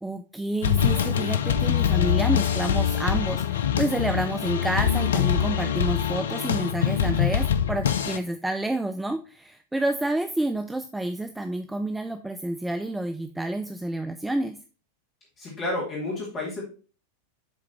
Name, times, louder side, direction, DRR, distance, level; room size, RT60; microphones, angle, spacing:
voice 1, 0.0-14.6, right 1 dB, 5° right, 8 dB, 0.4 m, -29 dB
sound 1, 0.6-8.2, left 9 dB, 65° left, 0.5 m, -24 dB
voice 2, 15.4-16.6, left 2 dB, 25° left, -5 dB, 2.3 m, -30 dB
7.6 x 3.7 x 4.3 m, 0.38 s
figure-of-eight pair, 90°, 0 cm